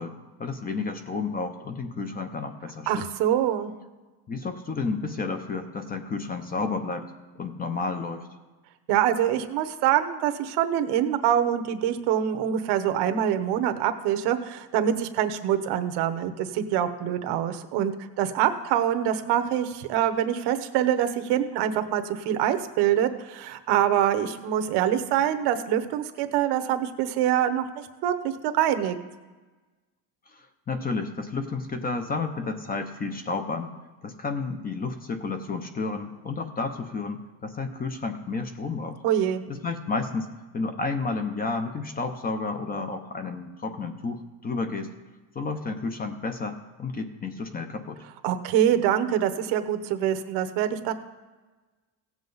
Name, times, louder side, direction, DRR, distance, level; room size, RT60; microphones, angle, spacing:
voice 1, 0.0-3.1 4.3-8.3 30.3-33.7 34.0-39.0 39.5-44.9 45.3-48.0, left 4 dB, 20° left, 7 dB, 0.6 m, -31 dB
voice 2, 2.9-3.7 8.9-28.1 28.4-29.0 39.0-39.4 48.2-50.9, right 10 dB, 65° right, 8 dB, 1.0 m, -25 dB
16.5 x 7.4 x 3.9 m, 1.3 s
cardioid pair, 145°, 43 cm